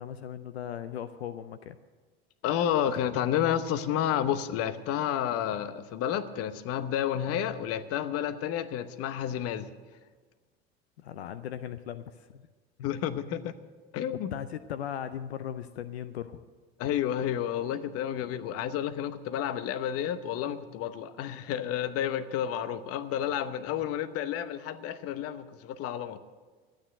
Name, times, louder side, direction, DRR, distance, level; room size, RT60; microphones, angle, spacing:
voice 1, 0.0-1.8 3.1-3.2 11.0-12.4 14.3-16.4, left 9 dB, 80° left, 12 dB, 0.6 m, -38 dB
voice 2, 2.4-9.7 12.8-13.5 13.9-14.3 16.8-26.2, left 10 dB, 50° left, 12 dB, 0.9 m, -30 dB
12.5 x 9.0 x 7.9 m, 1.4 s
hypercardioid pair, 80°, 31 cm